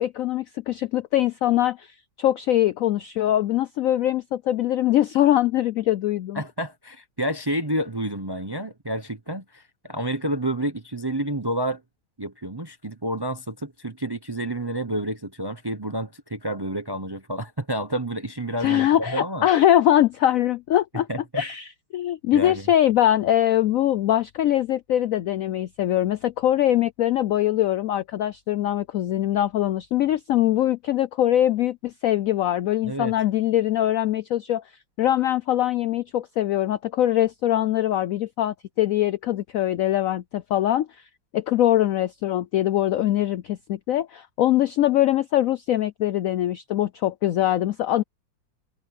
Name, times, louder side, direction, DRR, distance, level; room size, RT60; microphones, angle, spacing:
voice 1, 0.0-6.4 18.6-21.1 21.4-34.6 35.0-41.0 41.3-48.0, left 12 dB, 90° left, 0.7 m, -22 dB
voice 2, 6.3-11.8 12.2-19.5 21.1-21.4 22.3-22.7 32.8-33.1, right 1 dB, 25° right, 0.5 m, -29 dB
omnidirectional pair, 2.0 m